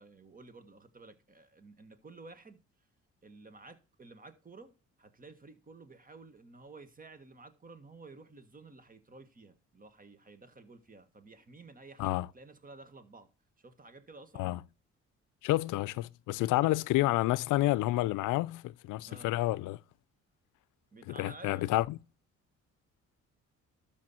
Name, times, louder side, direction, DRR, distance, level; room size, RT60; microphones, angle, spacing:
voice 1, 0.0-2.6 3.2-13.3 13.6-14.6 19.1-19.4 20.9-21.7, right 3 dB, 30° right, 1.6 m, -53 dB
voice 2, 15.4-19.8 21.1-22.0, left 17 dB, 85° left, 0.5 m, -29 dB
12.5 x 5.3 x 4.3 m
cardioid pair, 85°, 30 cm